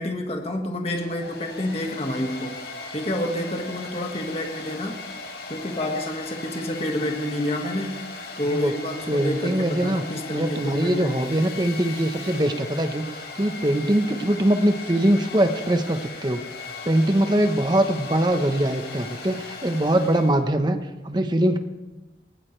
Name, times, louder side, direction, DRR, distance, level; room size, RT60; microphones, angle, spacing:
voice 1, 0.0-5.0 5.5-8.0 8.4-11.2, left 1 dB, 35° left, 2 dB, 1.8 m, -29 dB
Domestic sounds home sounds, 0.8-20.4, left 3 dB, 70° left, 3.8 m, -38 dB
voice 2, 9.1-10.0 10.3-16.4 16.8-20.8 21.0-21.6, right 1 dB, 25° right, 7 dB, 1.1 m, -22 dB
19.5 x 17.0 x 3.4 m, 1.1 s
head